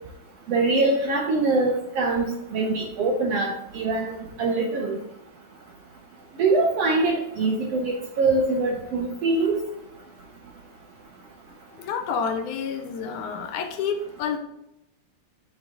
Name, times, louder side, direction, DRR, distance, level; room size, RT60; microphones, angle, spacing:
voice 1, 0.5-5.0 6.4-9.6, right 3 dB, 75° right, 0 dB, 1.5 m, -23 dB
voice 2, 11.8-14.4, left 6 dB, 80° left, 7 dB, 2.0 m, -29 dB
6.0 x 5.2 x 3.6 m, 0.86 s
omnidirectional pair, 3.6 m